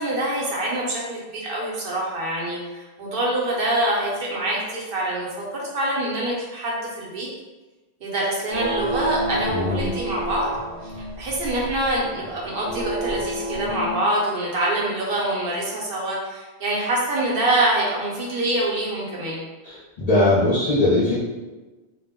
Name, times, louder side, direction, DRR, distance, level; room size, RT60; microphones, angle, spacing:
voice 1, 0.0-7.3 8.0-10.5 10.8-19.4, right 1 dB, 60° right, -4 dB, 0.8 m, -25 dB
sound 1, 8.5-14.0, right 1 dB, 30° right, 0.5 m, -30 dB
voice 2, 9.5-9.9 19.6-21.2, left 2 dB, 50° left, -8 dB, 0.5 m, -20 dB
2.2 x 2.1 x 3.5 m, 1.2 s
omnidirectional pair, 1.1 m